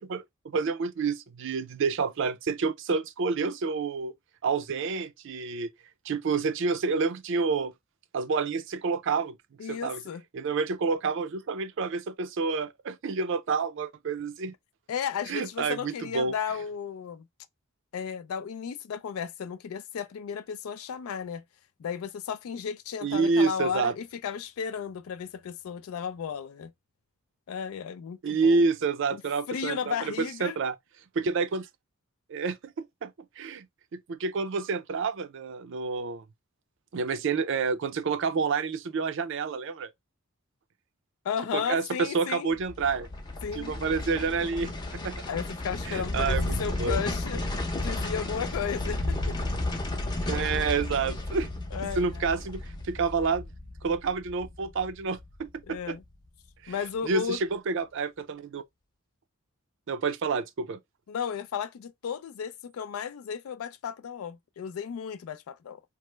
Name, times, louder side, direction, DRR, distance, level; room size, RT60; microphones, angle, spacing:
voice 1, 0.0-4.1 4.4-5.7 6.1-7.7 8.1-9.4 9.7-10.0 10.3-14.5 15.3-16.3 23.0-23.9 28.2-30.7 31.2-31.7 32.3-33.7 33.9-36.2 36.9-39.9 41.5-43.1 43.5-45.2 45.9-47.0 50.3-51.5 51.8-53.4 53.8-56.0 56.6-56.7 57.0-58.6 59.9-60.8, right 4 dB, 60° right, 0.4 m, -29 dB
voice 2, 9.6-10.2 14.9-17.2 17.9-21.4 21.8-26.7 27.5-28.7 29.1-29.2 29.5-30.6 41.2-42.5 43.4-43.8 45.3-47.4 47.8-49.4 51.7-52.3 55.7-56.0 56.7-57.4 61.1-65.8, left 7 dB, 90° left, 0.4 m, -34 dB
sound 1, 42.5-55.7 56.0-56.1, left 2 dB, 20° left, 0.6 m, -33 dB
3.1 x 2.0 x 3.2 m
head